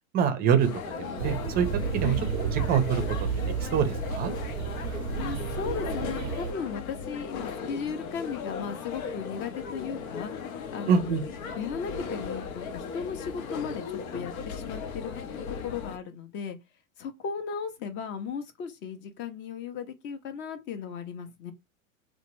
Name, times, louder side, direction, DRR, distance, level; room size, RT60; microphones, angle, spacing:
voice 1, 0.1-0.7 1.0-1.7 1.9-3.0 3.6-4.3 10.9-11.2, right 7 dB, 20° right, 0.5 m, -25 dB
sound 1, 0.6-16.0, left 5 dB, 80° left, 0.8 m, -37 dB
sound 2, 1.2-6.5, right 8 dB, 85° right, 0.5 m, -32 dB
voice 2, 5.2-10.3 10.7-11.1 11.6-15.1 15.6-16.6 17.0-21.5, left 6 dB, 25° left, 0.5 m, -36 dB
2.8 x 2.2 x 3.0 m
hypercardioid pair, 125°, 41 cm